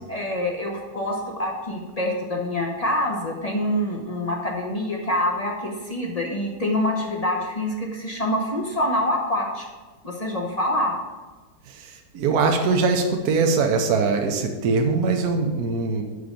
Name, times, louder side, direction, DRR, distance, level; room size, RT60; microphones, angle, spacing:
voice 1, 0.1-9.6 10.0-10.9, left 1 dB, 30° left, -1 dB, 0.7 m, -26 dB
voice 2, 11.7-16.0, right 4 dB, 70° right, 4 dB, 1.2 m, -22 dB
5.8 x 5.1 x 6.6 m, 1.3 s
omnidirectional pair, 1.8 m